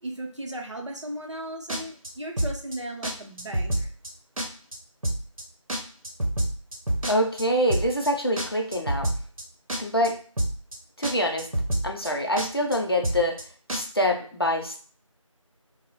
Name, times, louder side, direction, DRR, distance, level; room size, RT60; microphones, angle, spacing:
voice 1, 0.0-3.9, right 1 dB, 60° right, 1 dB, 0.6 m, -36 dB
sound 1, 1.7-2.1 2.4-2.8 3.0-3.1 3.4-4.1 4.4-4.8 5.0-5.4 5.7-7.4 7.7-8.1 8.4-9.4 9.7-10.1 10.4-10.8 11.0-11.1 11.4-12.1 12.4-12.8 13.0-13.4 13.7-13.8, right 1 dB, 85° right, 0.9 m, -27 dB
voice 2, 7.1-9.1 9.8-10.2 11.0-11.5 11.8-13.4 13.7-14.8, equal, 45° left, 3 dB, 0.5 m, -25 dB
2.8 x 2.0 x 2.8 m, 0.44 s
figure-of-eight pair, 175°, 17 cm